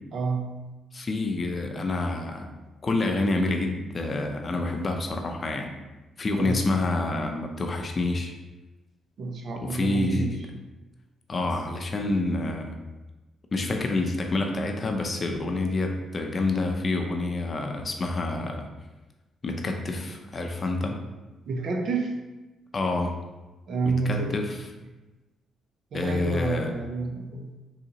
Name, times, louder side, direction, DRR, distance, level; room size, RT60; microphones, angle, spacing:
voice 1, 0.1-0.6 6.4-6.6 9.2-10.3 21.5-22.1 23.7-24.4 25.9-27.5, right 4 dB, 60° right, 3 dB, 0.6 m, -29 dB
voice 2, 0.9-2.5 2.8-5.8 6.2-8.3 9.6-10.5 11.3-12.8 13.5-18.7 19.4-21.0 22.7-23.2 23.9-24.6 25.9-26.7, left 2 dB, 35° left, 3 dB, 0.5 m, -28 dB
3.9 x 2.8 x 2.9 m, 1.1 s
cardioid pair, 90°, 0 cm